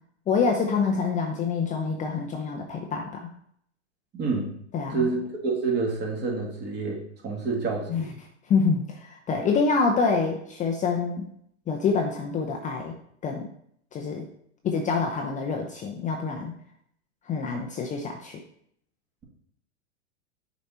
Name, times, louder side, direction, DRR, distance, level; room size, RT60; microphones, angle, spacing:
voice 1, 0.3-3.3 4.7-5.1 7.9-8.1 8.5-11.3 11.7-12.9 13.2-13.5 13.9-14.3 14.6-16.5 17.3-18.4, left 5 dB, 20° left, 2 dB, 0.7 m, -26 dB
voice 2, 4.1-4.5 4.9-8.1, right 4 dB, 30° right, -1 dB, 2.2 m, -28 dB
6.6 x 4.2 x 4.3 m, 0.69 s
hypercardioid pair, 105°, 36 cm